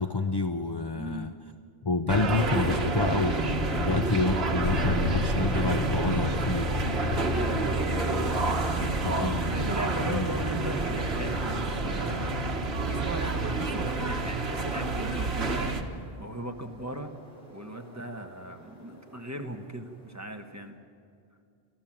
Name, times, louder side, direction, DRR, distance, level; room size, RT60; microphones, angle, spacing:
voice 1, 0.0-1.3 1.8-6.9 9.0-9.5 10.0-10.3, left 3 dB, 30° left, 8 dB, 0.5 m, -28 dB
voice 2, 0.9-1.3 3.8-4.3 7.0-8.8 9.5-12.3 12.9-17.1 17.5-20.8, right 1 dB, 15° right, 4 dB, 1.3 m, -38 dB
sound 1, 2.1-15.8, right 2 dB, 80° right, 1.7 m, -29 dB
sound 2, 4.6-13.1 15.4-19.9, left 1 dB, 60° left, 6.0 m, -36 dB
29.0 x 12.5 x 7.5 m, 2.4 s
omnidirectional pair, 1.0 m